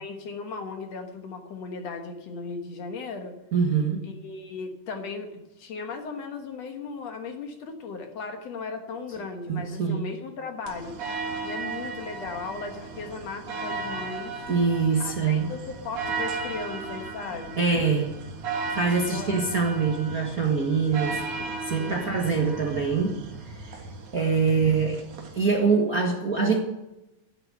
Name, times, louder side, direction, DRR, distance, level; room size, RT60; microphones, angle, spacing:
voice 1, 0.0-3.4 4.0-11.0 11.4-14.5 15.0-17.6 19.0-19.4 21.8-22.3, left 4 dB, 60° left, 5 dB, 2.4 m, -37 dB
voice 2, 3.5-4.0 9.5-10.0 14.5-15.5 17.6-18.1 18.7-23.2 23.6-23.8 24.1-25.0 25.3-26.6, right 5 dB, 40° right, 0 dB, 1.4 m, -24 dB
sound 1, 10.7-25.5, right 4 dB, 60° right, 2.8 m, -35 dB
12.5 x 11.0 x 7.8 m, 0.94 s
omnidirectional pair, 3.6 m